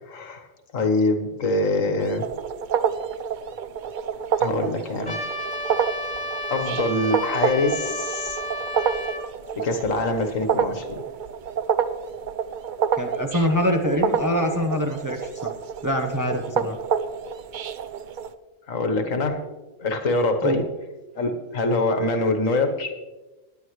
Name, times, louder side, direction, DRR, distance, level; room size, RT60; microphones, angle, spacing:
voice 1, 0.1-0.5 0.7-2.2 4.4-5.2 6.5-8.4 9.6-11.0 18.7-19.4 19.8-20.6 21.2-22.9, left 2 dB, 85° left, 7 dB, 1.7 m, -24 dB
sound 1, 2.0-18.3, right 7 dB, 55° right, 0.5 m, -28 dB
Trumpet, 5.0-9.2, left 1 dB, 35° left, 1.9 m, -31 dB
voice 2, 13.0-15.5 15.8-16.8 20.4-20.7, equal, 15° right, 3 dB, 0.8 m, -24 dB
18.0 x 10.5 x 3.2 m, 1.1 s
omnidirectional pair, 1.3 m